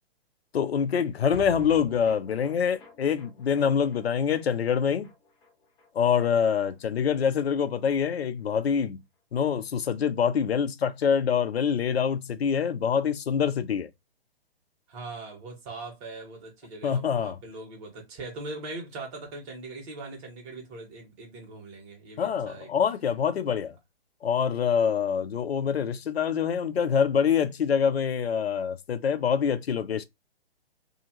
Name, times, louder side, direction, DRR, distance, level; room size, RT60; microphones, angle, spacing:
voice 1, 0.5-5.1 5.9-9.0 9.3-13.9 16.8-17.4 22.2-23.7 24.2-30.0, left 7 dB, 75° left, 0.6 m, -25 dB
sound 1, 1.3-7.7 8.0-8.1 8.4-8.5, left 4 dB, 15° left, 0.8 m, -50 dB
voice 2, 14.9-22.7, right 2 dB, 30° right, 1.4 m, -41 dB
2.7 x 2.4 x 2.9 m
figure-of-eight pair, 130°, 31 cm